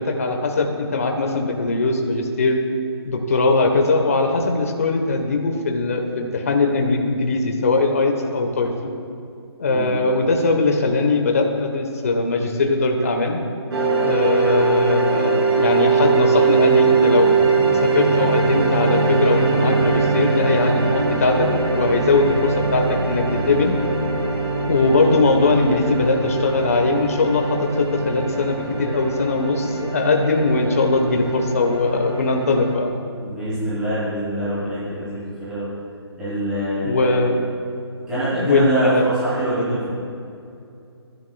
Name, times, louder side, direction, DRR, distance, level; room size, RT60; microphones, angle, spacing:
voice 1, 0.0-2.6 3.0-8.9 9.6-13.4 14.0-17.4 17.8-23.8 24.7-32.9 36.8-37.5 38.3-39.1, left 3 dB, 35° left, 3 dB, 1.1 m, -20 dB
sound 1, 13.7-32.7, right 4 dB, 65° right, 3.1 m, -21 dB
voice 2, 33.2-35.7 36.2-37.1 38.1-39.9, right 1 dB, 5° right, -14 dB, 3.5 m, -25 dB
28.0 x 11.0 x 2.3 m, 2.5 s
hypercardioid pair, 180°, 14 cm